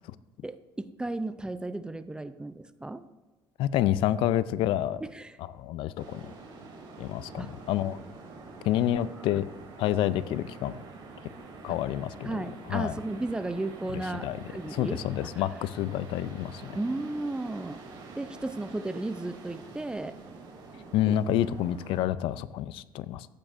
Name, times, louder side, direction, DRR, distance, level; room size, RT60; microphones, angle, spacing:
voice 1, 0.4-3.0 5.0-5.4 7.4-7.5 11.7-11.8 12.2-15.4 16.8-17.8 18.2-20.2 21.1-21.2, right 2 dB, 10° right, 12 dB, 0.4 m, -34 dB
voice 2, 3.6-5.0 5.6-6.3 7.0-8.0 8.6-9.4 9.8-10.8 11.6-12.4 12.7-12.9 14.2-14.4 14.7-16.8 20.9-23.3, left 12 dB, 75° left, 16 dB, 0.4 m, -28 dB
sound 1, 6.0-22.0, right 3 dB, 60° right, 2.8 m, -46 dB
14.0 x 8.6 x 2.5 m, 1.2 s
cardioid pair, 125°, 9 cm